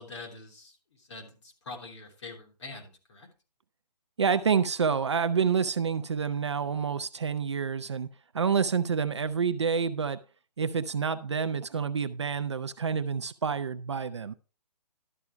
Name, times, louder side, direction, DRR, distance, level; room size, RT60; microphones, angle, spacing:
voice 1, 0.0-3.3, left 3 dB, 45° left, 3.2 m, -45 dB
voice 2, 4.2-8.1 8.3-10.2 10.6-14.3, right 6 dB, 45° right, 0.6 m, -28 dB
12.5 x 6.1 x 4.5 m
hypercardioid pair, 170°, 21 cm